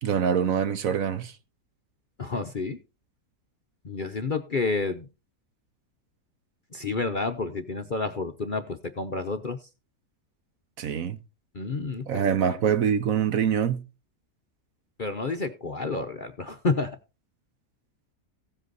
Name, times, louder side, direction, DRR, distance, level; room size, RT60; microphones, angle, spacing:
voice 1, 0.0-1.3 10.8-11.2 12.1-13.8, right 8 dB, 60° right, 1.2 m, -24 dB
voice 2, 2.2-2.8 3.8-5.1 6.7-9.6 11.5-12.6 15.0-17.0, left 3 dB, 40° left, 0.7 m, -30 dB
16.0 x 7.9 x 4.0 m
omnidirectional pair, 1.7 m